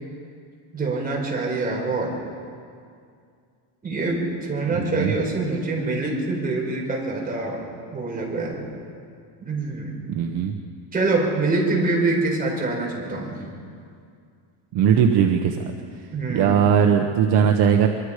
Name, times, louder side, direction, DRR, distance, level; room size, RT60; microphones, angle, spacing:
voice 1, 0.7-2.1 3.8-7.6 7.9-8.6 9.4-10.1 10.9-13.4 16.1-16.6, right 3 dB, 20° right, -2 dB, 4.6 m, -25 dB
voice 2, 4.7-5.1 10.1-10.5 14.7-15.6 16.3-17.9, right 8 dB, 55° right, 4 dB, 1.2 m, -19 dB
24.0 x 23.0 x 5.0 m, 2.3 s
cardioid pair, 170°, 47 cm